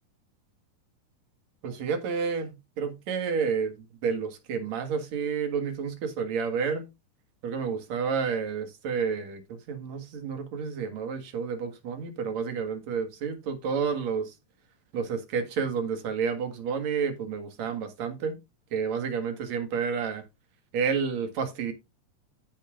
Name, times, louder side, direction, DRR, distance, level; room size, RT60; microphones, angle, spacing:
voice 1, 1.6-6.9 7.4-14.4 14.9-18.4 18.7-20.2 20.7-21.7, right 6 dB, 65° right, 2.8 m, -30 dB
15.5 x 5.4 x 2.4 m
omnidirectional pair, 3.5 m